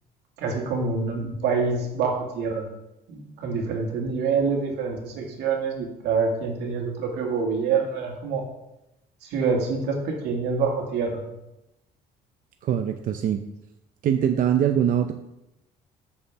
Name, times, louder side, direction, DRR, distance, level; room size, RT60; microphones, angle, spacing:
voice 1, 0.4-2.6 3.1-8.4 9.2-11.2, right 5 dB, 80° right, 1 dB, 2.2 m, -26 dB
voice 2, 12.6-13.4 14.0-15.1, right 9 dB, 55° right, 7 dB, 0.6 m, -22 dB
6.7 x 5.5 x 7.0 m, 0.90 s
cardioid pair, 110°, 17 cm